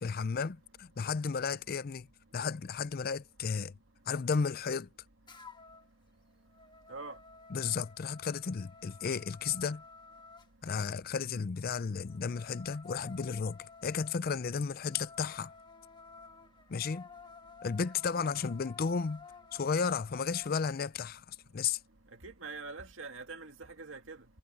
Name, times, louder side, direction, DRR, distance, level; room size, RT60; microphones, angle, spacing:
voice 1, 0.0-2.1 2.3-3.7 4.1-4.9 7.5-9.8 10.6-15.5 16.7-17.1 17.6-19.3 19.5-21.8, left 5 dB, 45° left, 0.4 m, -33 dB
sound 1, 5.3-5.9 6.3-10.5 12.0-20.5, left 5 dB, 20° left, 1.4 m, -53 dB
voice 2, 22.2-24.2, right 3 dB, 65° right, 2.3 m, -44 dB
head